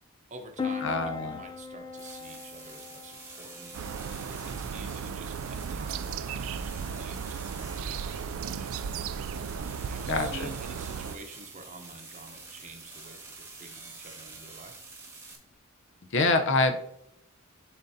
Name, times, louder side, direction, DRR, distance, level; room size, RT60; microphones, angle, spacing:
voice 1, 0.3-3.8 4.3-9.1 9.9-14.7, right 3 dB, 35° right, 5 dB, 0.8 m, -48 dB
Piano, 0.6-15.6, left 5 dB, 20° left, 0.4 m, -44 dB
voice 2, 0.8-1.4 10.1-10.5 16.1-17.0, left 3 dB, 55° left, 7 dB, 0.6 m, -26 dB
sound 1, 1.9-15.3, right 3 dB, 10° right, 1.1 m, -47 dB
sound 2, 3.7-11.2, right 6 dB, 65° right, 0.3 m, -35 dB
11.0 x 3.8 x 2.7 m, 0.77 s
head